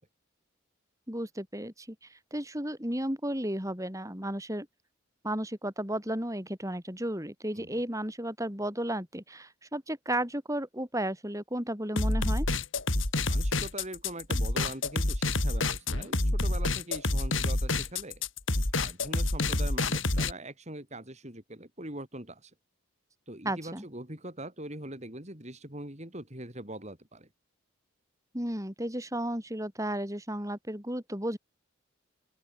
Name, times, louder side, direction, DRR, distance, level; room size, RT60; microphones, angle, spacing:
voice 1, 1.1-4.7 5.2-12.5 23.5-23.8 28.3-31.4, right 1 dB, 15° right, 6.9 m, -33 dB
sound 1, 12.0-20.3, left 2 dB, 65° left, 3.7 m, -28 dB
voice 2, 13.2-18.2 18.7-22.5 23.3-27.3, right 1 dB, 30° right, 4.8 m, -42 dB
open air
head